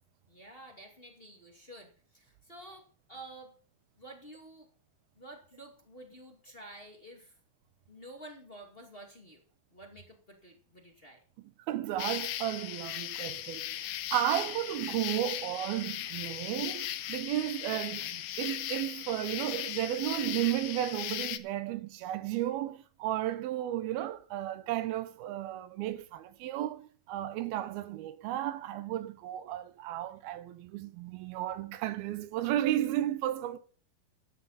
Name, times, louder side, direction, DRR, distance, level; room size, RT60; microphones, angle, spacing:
voice 1, 0.3-3.5 4.0-4.7 5.1-7.4 7.9-9.4 9.7-11.2, right 1 dB, 20° left, 1.6 m, -50 dB
voice 2, 11.7-33.6, right 13 dB, 80° right, 2.7 m, -33 dB
sound 1, 12.0-21.4, left 13 dB, 80° left, 2.5 m, -38 dB
14.0 x 12.0 x 4.1 m
omnidirectional pair, 4.4 m